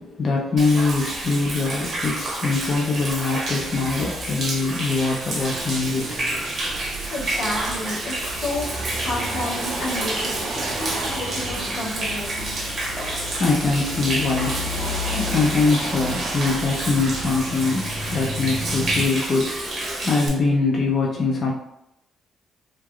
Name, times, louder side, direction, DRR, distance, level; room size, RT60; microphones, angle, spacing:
voice 1, 0.0-6.8 12.9-21.5, left 3 dB, 40° left, -2 dB, 0.5 m, -23 dB
Human voice / Rain / Stream, 0.6-20.3, right 1 dB, 50° right, 0.9 m, -29 dB
sound 1, 5.5-19.1, equal, 85° right, 0.9 m, -32 dB
voice 2, 7.0-12.5, left 2 dB, 85° left, -5 dB, 1.0 m, -31 dB
3.2 x 2.4 x 2.2 m, 0.82 s
cardioid pair, 90°, 0 cm